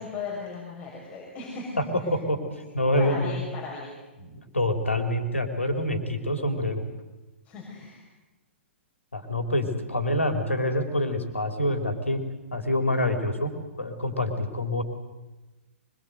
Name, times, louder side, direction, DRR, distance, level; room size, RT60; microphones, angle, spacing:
voice 1, 0.0-2.1 2.6-4.0 7.4-8.0, left 4 dB, 20° left, -3 dB, 6.3 m, -37 dB
voice 2, 1.8-2.4 2.7-3.3 4.2-6.8 9.1-12.2 12.5-13.5 13.8-14.8, left 1 dB, 80° left, 6 dB, 3.8 m, -26 dB
24.5 x 22.5 x 8.1 m, 1.1 s
figure-of-eight pair, 115°, 7 cm